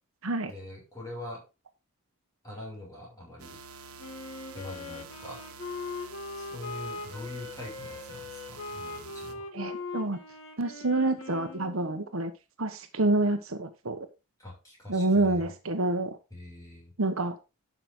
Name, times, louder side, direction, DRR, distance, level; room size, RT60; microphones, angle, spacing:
voice 1, 0.5-1.4 2.4-3.6 4.5-5.4 6.4-9.5 14.4-15.5 16.3-16.9, left 1 dB, 15° left, -2 dB, 6.6 m, -43 dB
sound 1, 3.4-9.3, right 5 dB, 85° right, 1.6 m, -48 dB
Wind instrument woodwind instrument, 4.0-12.1, left 3 dB, 65° left, 2.2 m, -40 dB
voice 2, 9.5-10.2 10.6-12.3 12.6-14.1 14.9-16.2 17.0-17.4, right 2 dB, 65° right, 8 dB, 1.3 m, -27 dB
12.0 x 6.0 x 3.9 m, 0.28 s
head